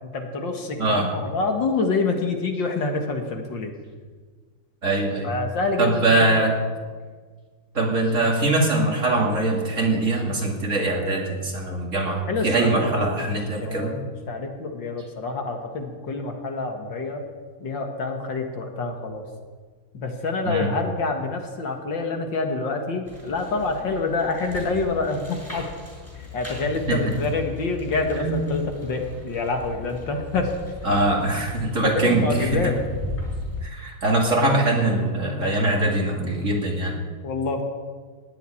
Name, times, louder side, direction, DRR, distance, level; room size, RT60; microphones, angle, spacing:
voice 1, 0.0-3.7 5.2-6.5 12.3-13.3 13.6-14.0 14.3-17.2 17.6-19.3 19.9-25.7 26.2-30.5 31.8-32.8 37.2-37.7, left 3 dB, 65° left, 3 dB, 2.3 m, -27 dB
voice 2, 4.8-5.3 5.8-6.6 7.7-14.0 20.5-20.7 26.9-27.0 28.2-28.4 30.8-32.2 32.5-32.6 33.6-37.0, right 2 dB, 35° right, 0 dB, 2.6 m, -22 dB
sound 1, 23.1-33.6, left 2 dB, 5° left, 5.9 m, -37 dB
17.0 x 7.9 x 9.9 m, 1.5 s
omnidirectional pair, 2.3 m